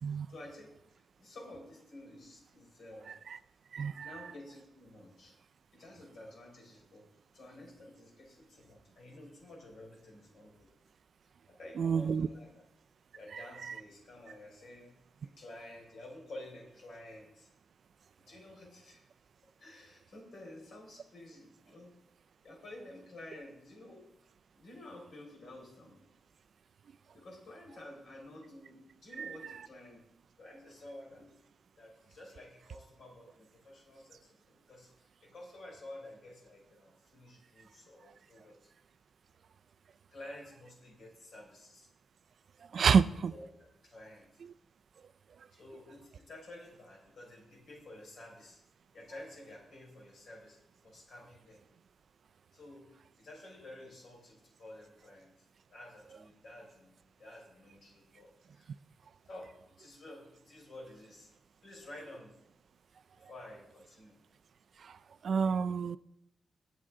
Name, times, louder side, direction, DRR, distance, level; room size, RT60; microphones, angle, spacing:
voice 1, 0.0-0.7 1.2-3.2 3.7-5.3 5.7-7.0 7.3-10.7 11.5-12.6 13.1-14.9 15.2-17.5 18.3-19.1 19.6-21.9 22.4-24.0 24.5-26.0 27.1-30.0 30.4-31.3 31.8-34.4 34.7-38.7 40.1-41.9 42.8-44.3 45.5-48.6 48.9-50.6 50.8-51.6 52.5-52.8 53.2-58.7 59.2-61.3 61.6-62.3 63.3-64.1, left 1 dB, 55° left, 4.9 m, -51 dB
voice 2, 3.7-4.1 11.8-12.3 13.6-13.7 29.2-29.4 42.7-43.3 64.8-65.0 65.2-66.0, right 6 dB, 50° right, 0.3 m, -28 dB
21.0 x 7.9 x 3.7 m
wide cardioid pair, 165°, 0 cm